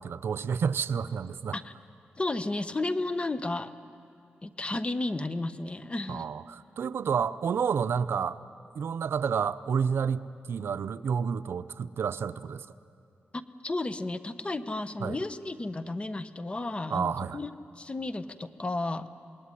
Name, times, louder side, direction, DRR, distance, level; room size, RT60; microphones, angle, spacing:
voice 1, 0.0-1.6 6.1-8.4 8.7-12.7 15.0-15.2 16.9-17.4, right 6 dB, 75° right, 14 dB, 0.6 m, -30 dB
voice 2, 2.2-3.7 4.4-6.3 13.3-19.1, left 2 dB, 30° left, 11 dB, 1.1 m, -33 dB
27.0 x 20.5 x 9.9 m, 2.6 s
cardioid pair, 70°, 4 cm